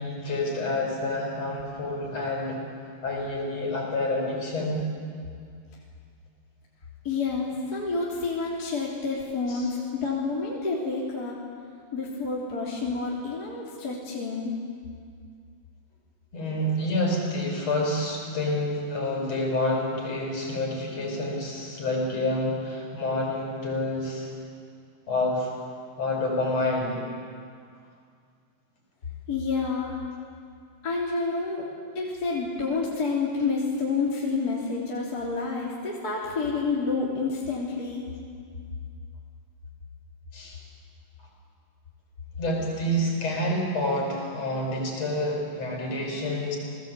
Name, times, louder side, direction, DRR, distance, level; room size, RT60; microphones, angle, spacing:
voice 1, 0.0-2.6 3.0-4.8 9.5-9.7 16.3-24.3 25.1-25.5 26.0-27.0 40.3-40.6 42.4-46.6, left 1 dB, 40° left, 0 dB, 6.1 m, -28 dB
voice 2, 7.0-11.4 11.9-14.5 29.3-30.0 30.8-31.7 31.9-38.1, left 4 dB, 25° left, -5 dB, 3.3 m, -29 dB
30.0 x 19.0 x 8.2 m, 2.2 s
omnidirectional pair, 4.3 m